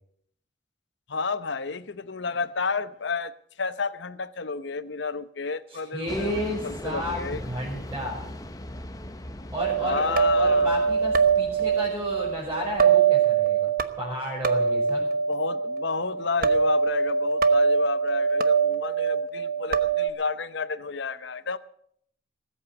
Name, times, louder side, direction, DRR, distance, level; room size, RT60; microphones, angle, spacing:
voice 1, 1.1-7.4 9.8-10.9 15.3-21.6, left 4 dB, 70° left, 0.8 m, -31 dB
voice 2, 5.7-8.3 9.5-15.1, equal, 15° right, 5.3 m, -33 dB
sound 1, 6.1-13.0, left 1 dB, 20° left, 1.0 m, -40 dB
sound 2, 9.6-20.1, right 6 dB, 50° right, 1.0 m, -23 dB
19.5 x 8.6 x 7.9 m
head